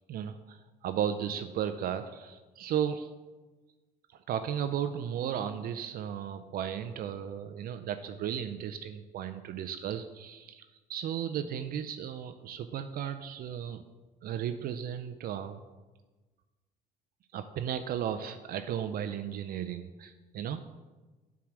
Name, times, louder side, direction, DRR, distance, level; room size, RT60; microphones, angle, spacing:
voice 1, 0.1-3.1 4.3-13.8 14.2-15.6 17.3-20.8, right 9 dB, 60° right, 9 dB, 0.5 m, -35 dB
7.2 x 4.8 x 6.1 m, 1.2 s
cardioid pair, 110°, 17 cm